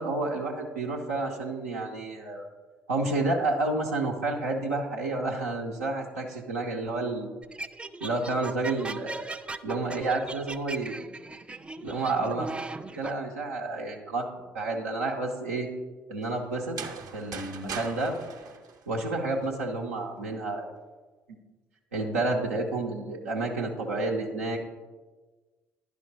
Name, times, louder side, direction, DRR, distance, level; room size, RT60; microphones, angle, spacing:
voice 1, 0.0-2.5 2.9-7.3 8.0-9.3 9.6-10.9 11.8-12.5 13.0-14.3 14.5-15.7 16.1-16.8 17.1-18.2 18.9-20.7 21.9-24.6, right 2 dB, 85° right, -2 dB, 0.7 m, -30 dB
sound 1, 7.4-13.1, right 2 dB, 15° right, 0.4 m, -38 dB
sound 2, 16.6-19.5, right 5 dB, 50° right, 0.8 m, -40 dB
10.5 x 5.1 x 4.0 m, 1.3 s
figure-of-eight pair, 50°, 8 cm